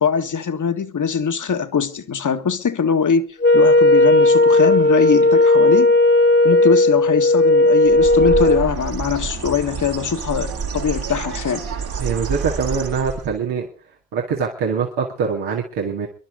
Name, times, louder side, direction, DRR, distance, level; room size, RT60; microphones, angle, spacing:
voice 1, 0.0-5.9 6.4-11.6, left 6 dB, 50° left, 1.6 m, -22 dB
Wind instrument woodwind instrument, 3.4-8.7, left 2 dB, 25° left, 1.5 m, -14 dB
Bird, 7.8-13.4, right 5 dB, 70° right, 2.7 m, -28 dB
voice 2, 12.0-13.7 14.1-16.1, right 6 dB, 85° right, 2.1 m, -23 dB
28.0 x 11.0 x 3.7 m
hypercardioid pair, 40°, 39 cm